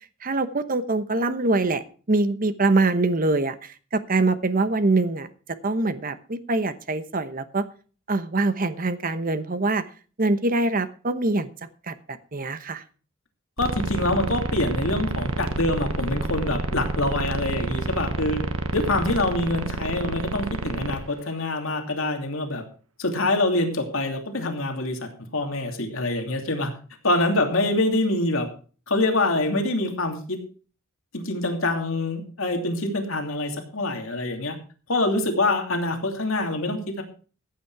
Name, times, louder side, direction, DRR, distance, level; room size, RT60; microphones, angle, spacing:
voice 1, 0.2-1.8 2.1-5.3 5.6-7.7 8.1-9.8 10.2-11.5 11.9-12.8, right 2 dB, 40° right, 12 dB, 1.0 m, -24 dB
voice 2, 13.6-18.4 18.7-22.6 23.0-26.7 27.0-28.5 28.9-30.4 31.1-34.6 34.9-37.0, left 2 dB, 75° left, 3 dB, 2.8 m, -25 dB
sound 1, 13.6-21.0, right 2 dB, 85° right, 1.4 m, -29 dB
15.0 x 8.4 x 4.8 m, 0.39 s
head